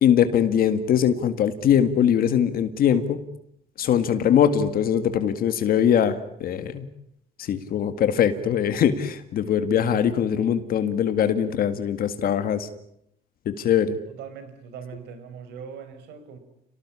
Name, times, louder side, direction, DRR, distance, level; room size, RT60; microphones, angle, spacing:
voice 1, 0.0-3.2 3.8-6.2 6.4-6.8 7.5-12.7 13.5-14.0, left 9 dB, 60° left, 9 dB, 1.9 m, -21 dB
voice 2, 14.1-16.4, right 6 dB, 80° right, 11 dB, 5.5 m, -40 dB
29.0 x 18.5 x 9.8 m, 0.76 s
cardioid pair, 110°, 17 cm